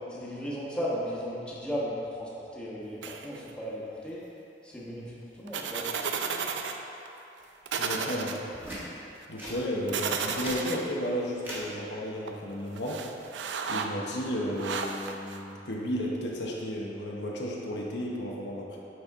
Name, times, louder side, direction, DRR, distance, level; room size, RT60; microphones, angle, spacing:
voice 1, 0.1-4.2 4.6-5.9, equal, 5° left, -7 dB, 1.2 m, -35 dB
sound 1, 3.0-3.5 5.5-6.8 7.1-7.2 7.7-8.4 9.9-10.8 12.3-12.4 12.8-13.9 14.6-15.4, right 5 dB, 85° right, 0.4 m, -33 dB
voice 2, 7.8-8.4 9.3-13.0 13.7-18.8, equal, 75° left, -2 dB, 0.9 m, -33 dB
sound 2, 8.5-8.8 9.4-9.6 10.2-10.6 11.4-11.6 12.9-13.2, right 1 dB, 15° right, 1.3 m, -39 dB
9.5 x 4.2 x 3.6 m, 2.9 s
head